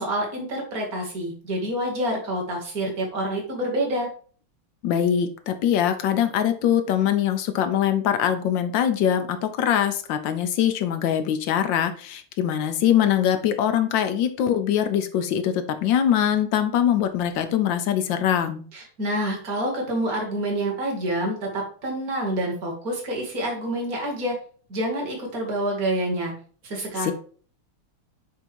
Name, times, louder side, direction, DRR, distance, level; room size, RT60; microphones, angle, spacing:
voice 1, 0.0-4.1 18.7-24.4 24.7-26.3 26.6-27.1, right 1 dB, 45° right, 0 dB, 2.2 m, -27 dB
voice 2, 4.8-18.6 27.0-27.1, left 9 dB, 75° left, 9 dB, 1.2 m, -23 dB
7.8 x 2.8 x 4.5 m, 0.44 s
omnidirectional pair, 2.4 m